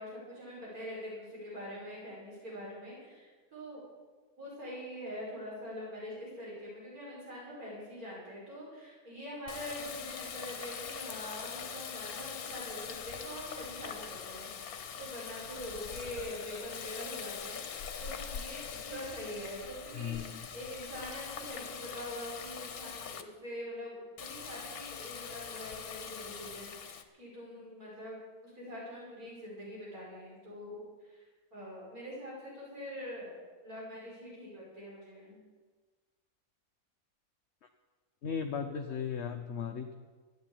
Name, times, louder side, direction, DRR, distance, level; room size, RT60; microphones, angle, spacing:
voice 1, 0.0-3.8 4.4-17.7 18.0-31.2 31.5-35.4, equal, 70° right, -5 dB, 5.9 m, -44 dB
Water tap faucet, 9.5-23.2 24.2-27.0, left 7 dB, 75° left, 1.4 m, -43 dB
voice 2, 19.9-20.4 38.2-39.9, left 7 dB, 55° left, 5 dB, 1.0 m, -36 dB
13.5 x 9.4 x 8.7 m, 1.4 s
omnidirectional pair, 1.6 m